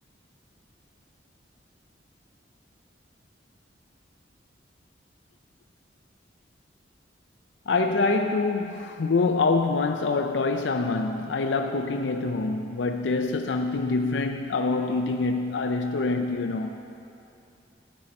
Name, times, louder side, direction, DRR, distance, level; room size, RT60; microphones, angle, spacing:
voice 1, 7.7-16.8, left 3 dB, 80° left, 0.5 m, -25 dB
12.5 x 5.5 x 8.7 m
head